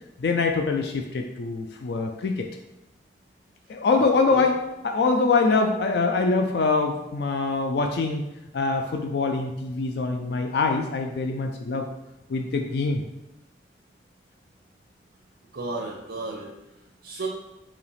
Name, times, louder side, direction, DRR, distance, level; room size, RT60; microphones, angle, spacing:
voice 1, 0.2-2.5 3.7-4.6 4.8-8.2 8.5-11.9 12.3-13.0, left 3 dB, 65° left, 4 dB, 0.4 m, -24 dB
voice 2, 4.0-4.5 15.5-16.5 17.0-17.3, right 3 dB, 80° right, -1 dB, 0.7 m, -34 dB
4.8 x 2.9 x 3.3 m, 0.97 s
head